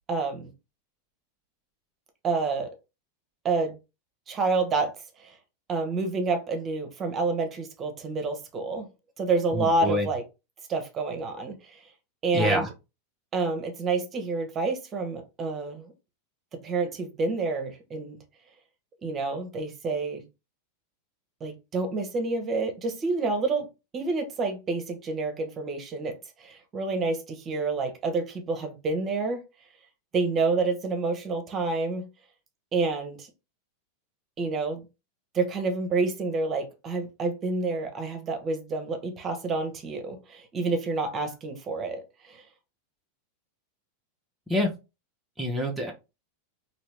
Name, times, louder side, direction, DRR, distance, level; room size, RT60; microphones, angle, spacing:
voice 1, 0.1-0.5 2.2-2.7 3.4-3.8 4.3-5.4 5.7-8.9 9.2-10.2 10.7-11.9 12.2-12.7 13.3-15.9 16.5-18.2 19.0-20.2 21.4-23.7 23.9-29.4 30.1-32.1 32.7-33.3 34.4-34.8 35.3-42.4, right 3 dB, 30° right, 0.9 m, -28 dB
voice 2, 9.6-10.1 12.3-12.7 44.5-44.7 45.4-45.9, equal, 5° right, 0.8 m, -26 dB
2.9 x 2.7 x 3.3 m
hypercardioid pair, 95°, 0 cm